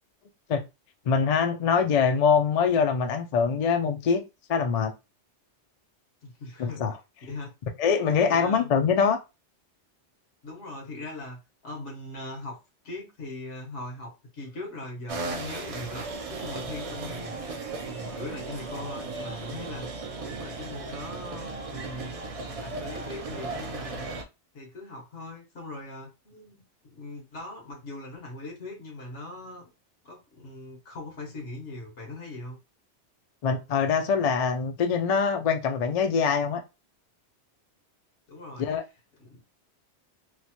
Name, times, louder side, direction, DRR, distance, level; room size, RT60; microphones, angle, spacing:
voice 1, 1.1-4.2 4.5-4.9 6.6-6.9 7.8-9.2 33.4-36.6 38.6-38.8, left 6 dB, 60° left, 0.4 m, -23 dB
voice 2, 6.2-6.8 7.2-7.5 8.3-8.7 10.4-12.6 12.8-22.1 22.6-24.1 24.5-29.6 30.0-32.6 38.3-38.7 39.2-39.4, left 2 dB, 85° left, 1.5 m, -40 dB
sound 1, 15.1-24.2, right 3 dB, 60° right, 0.4 m, -36 dB
3.2 x 2.1 x 2.8 m
omnidirectional pair, 1.2 m